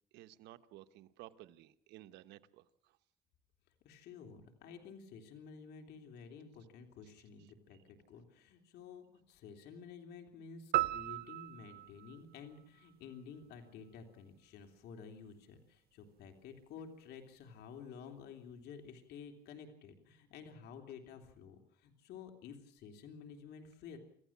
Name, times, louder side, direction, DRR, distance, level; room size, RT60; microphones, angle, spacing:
voice 1, 0.1-2.9, right 15 dB, 90° right, 11 dB, 1.1 m, -55 dB
voice 2, 3.8-24.0, left 6 dB, 75° left, 4 dB, 3.3 m, -52 dB
sound 1, 10.7-13.2, right 16 dB, 65° right, 0.8 m, -37 dB
27.0 x 15.0 x 7.4 m, 0.65 s
cardioid pair, 110°, 17 cm